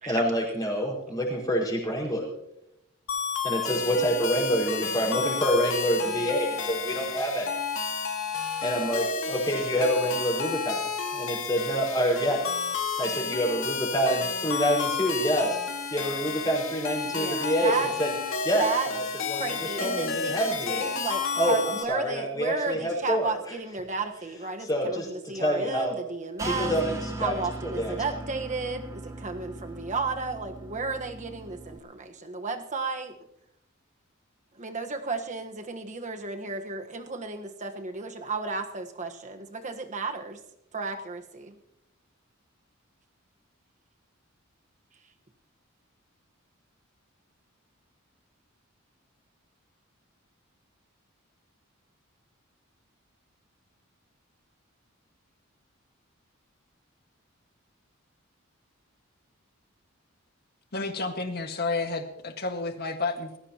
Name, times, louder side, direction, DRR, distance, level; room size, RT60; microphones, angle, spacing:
voice 1, 0.0-2.3 3.4-7.6 8.6-10.8 11.1-12.4 13.0-15.6 15.9-18.1 18.4-20.9 21.4-23.3 24.6-25.9 26.4-27.3 27.6-27.9, equal, 20° left, -3 dB, 5.1 m, -27 dB
sound 1, 3.1-21.8, left 5 dB, 70° left, 2.2 m, -31 dB
voice 2, 17.1-17.9 18.6-18.9 19.3-26.7 27.2-33.2 34.6-40.4 40.7-41.6, right 4 dB, 35° right, 6 dB, 1.3 m, -33 dB
sound 2, 26.4-31.8, right 1 dB, 15° right, 1.1 m, -38 dB
voice 3, 60.7-63.4, left 3 dB, 50° left, 5 dB, 1.8 m, -31 dB
19.5 x 16.0 x 3.0 m, 0.84 s
head